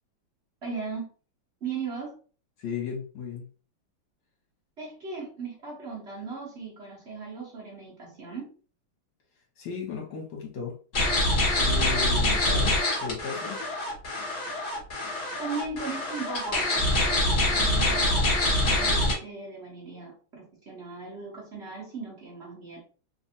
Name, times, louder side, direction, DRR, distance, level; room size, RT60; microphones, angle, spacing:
voice 1, 0.6-1.1 1.6-2.1 4.8-8.5 15.4-16.7 17.1-22.8, right 4 dB, 65° right, -4 dB, 0.6 m, -37 dB
voice 2, 2.6-3.5 9.6-10.8 11.6-13.7, left 6 dB, 65° left, -1 dB, 1.8 m, -35 dB
sound 1, 10.9-19.1, left 1 dB, 40° left, 1.4 m, -25 dB
3.8 x 2.5 x 2.7 m, 0.39 s
omnidirectional pair, 2.4 m